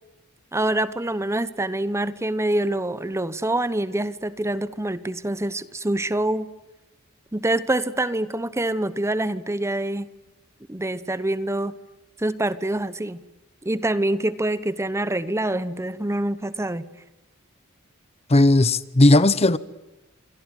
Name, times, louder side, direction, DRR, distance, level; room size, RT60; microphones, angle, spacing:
voice 1, 0.5-6.5 7.3-10.1 10.7-11.8 12.2-13.2 13.6-16.9, right 1 dB, 15° right, 1.0 m, -25 dB
voice 2, 18.3-19.6, left 2 dB, 30° left, 0.9 m, -16 dB
26.5 x 24.0 x 9.3 m
head